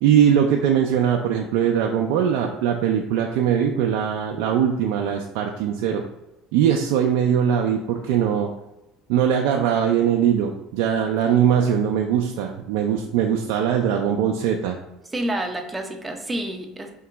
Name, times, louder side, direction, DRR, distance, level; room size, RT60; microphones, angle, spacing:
voice 1, 0.0-6.0 6.5-8.5 9.1-14.8, right 8 dB, 75° right, 2 dB, 0.4 m, -21 dB
voice 2, 15.1-16.9, right 1 dB, 15° right, 4 dB, 0.7 m, -28 dB
4.6 x 2.9 x 3.4 m, 0.95 s
supercardioid pair, 85°, 0 cm